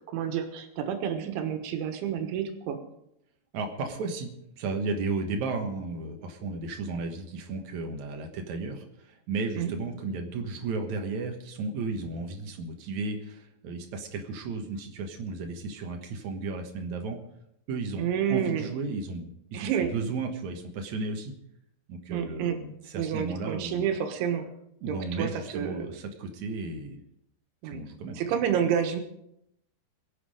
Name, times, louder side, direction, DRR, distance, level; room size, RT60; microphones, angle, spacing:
voice 1, 0.1-2.8 9.6-9.7 18.0-18.7 19.5-19.9 22.1-22.6 23.0-24.5 24.9-25.9 27.6-27.9 28.2-29.0, right 8 dB, 85° right, 6 dB, 3.7 m, -29 dB
voice 2, 3.5-4.3 4.6-17.2 17.7-21.3 21.9-23.9 24.8-27.0 27.6-28.2, right 3 dB, 65° right, 4 dB, 1.9 m, -34 dB
23.0 x 8.4 x 5.0 m, 0.79 s
omnidirectional pair, 5.2 m